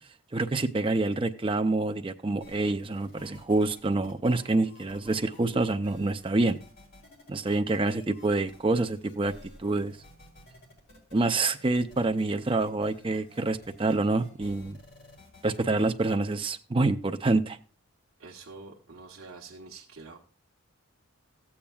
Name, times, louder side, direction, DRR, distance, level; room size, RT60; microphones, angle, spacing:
voice 1, 0.3-6.6 7.3-9.3 9.6-10.0 11.1-14.8 15.4-17.6, right 2 dB, 25° right, 9 dB, 0.5 m, -27 dB
sound 1, 2.4-15.9, left 1 dB, 50° left, 3.1 m, -54 dB
voice 2, 18.2-20.2, right 3 dB, 75° right, -2 dB, 1.1 m, -46 dB
14.5 x 8.6 x 2.3 m, 0.36 s
head